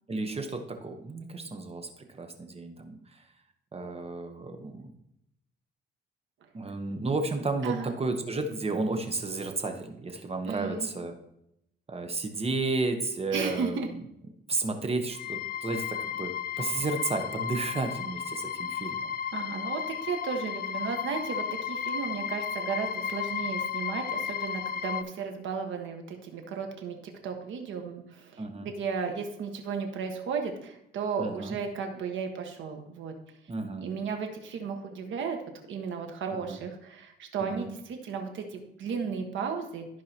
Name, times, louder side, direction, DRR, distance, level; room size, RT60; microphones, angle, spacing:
voice 1, 0.1-1.9 2.2-3.2 3.7-4.9 6.5-11.1 11.9-13.8 14.5-19.1 28.4-28.7 31.2-31.5 33.5-33.9 36.5-36.6 37.4-37.7, right 3 dB, 30° right, 5 dB, 1.1 m, -32 dB
voice 2, 7.6-7.9 10.4-10.9 13.3-13.9 19.3-27.0 27.2-33.1 33.8-35.4 35.7-39.9, right 5 dB, 75° right, 4 dB, 1.5 m, -34 dB
sound 1, 15.1-25.0, left 8 dB, 50° left, 0.5 m, -34 dB
13.5 x 4.8 x 2.9 m, 0.79 s
cardioid pair, 90°, 20 cm